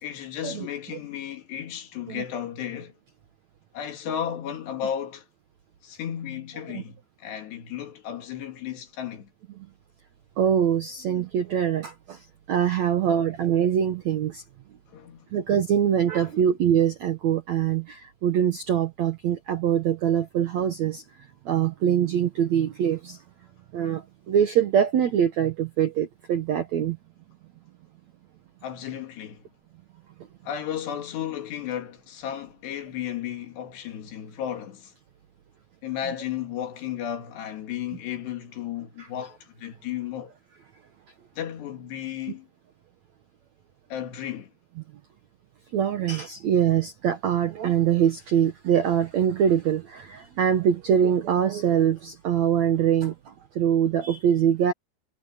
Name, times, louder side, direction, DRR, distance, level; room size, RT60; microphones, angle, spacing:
voice 1, 0.0-2.9 3.7-5.2 5.8-9.3 14.9-15.3 16.2-16.3 28.6-29.4 30.5-34.9 35.8-40.3 41.4-42.5 43.9-44.5, left 10 dB, 75° left, 4.5 m, -34 dB
voice 2, 10.4-12.2 12.5-14.4 15.3-21.0 21.4-23.2 23.7-27.0 45.7-53.1 53.5-54.7, right 9 dB, 75° right, 1.7 m, -23 dB
omnidirectional pair, 4.9 m